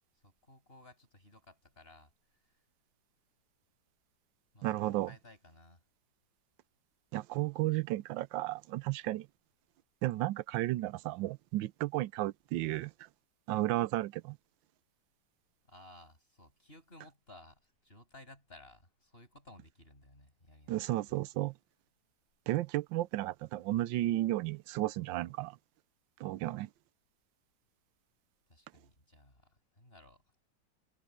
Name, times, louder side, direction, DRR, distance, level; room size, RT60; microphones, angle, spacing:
voice 1, 0.2-2.6 4.5-5.8 15.7-21.2 28.5-30.2, left 1 dB, 30° left, 8.0 m, -57 dB
voice 2, 4.6-5.1 7.1-9.3 10.0-13.1 13.5-14.4 20.7-21.5 22.5-25.6 26.2-26.7, right 16 dB, 85° right, 1.3 m, -33 dB
omnidirectional pair, 2.0 m